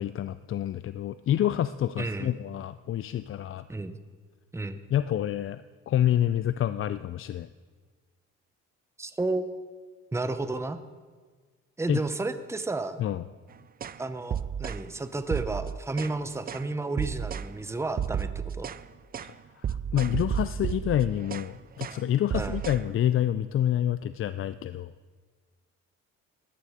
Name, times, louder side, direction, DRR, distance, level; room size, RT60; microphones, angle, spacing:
voice 1, 0.0-3.7 4.9-7.5 11.9-12.0 13.0-13.2 19.2-24.9, left 11 dB, 45° left, 13 dB, 0.4 m, -28 dB
voice 2, 2.0-2.3 3.7-4.0 4.5-4.8 9.0-9.7 10.1-10.8 11.8-13.0 14.0-18.7 22.3-22.6, right 2 dB, 10° right, 10 dB, 0.7 m, -32 dB
sound 1, 13.8-14.0 14.3-14.8 15.3-16.2 16.5-16.7 17.0-17.5 18.0-18.8 19.1-19.3 19.6-21.5 21.8-22.0 22.3-22.8, right 8 dB, 30° right, 0.4 m, -32 dB
14.0 x 11.0 x 4.9 m, 1.5 s
cardioid pair, 90°, 30 cm